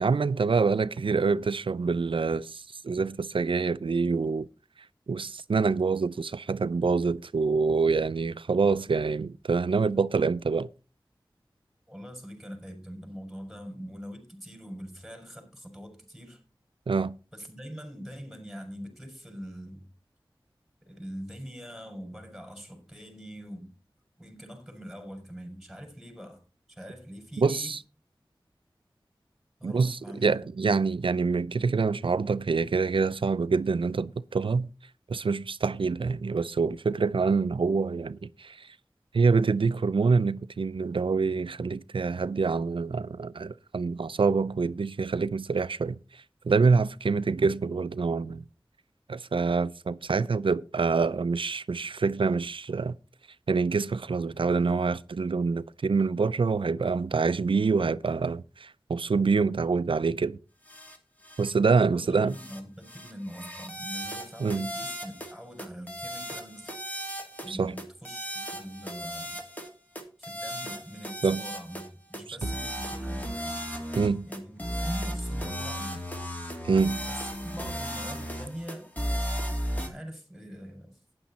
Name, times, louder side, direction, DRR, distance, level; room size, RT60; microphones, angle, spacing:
voice 1, 0.0-4.5 5.1-10.7 16.9-17.1 27.4-27.8 29.6-34.7 35.1-38.7 39.1-48.4 49.1-53.0 53.5-60.4 61.4-62.3 64.4-64.7 67.5-67.7 71.2-71.4 72.3-72.5 74.0-74.2 76.6-77.0, right 4 dB, 75° right, 0.5 m, -26 dB
voice 2, 11.9-16.4 17.3-19.9 20.8-23.7 24.2-26.4 26.7-27.8 29.6-30.4 61.8-66.7 67.4-69.4 70.2-73.6 74.2-76.1 77.0-78.9 79.7-81.0, equal, ahead, 5.2 m, -43 dB
sound 1, 60.7-61.0 61.2-61.5 62.3-62.6 62.9-65.3 65.6-67.5 67.8-69.7 70.0-71.9 72.1-79.9, equal, 20° left, 2.9 m, -35 dB
11.5 x 9.8 x 4.2 m
wide cardioid pair, 45°, 9 cm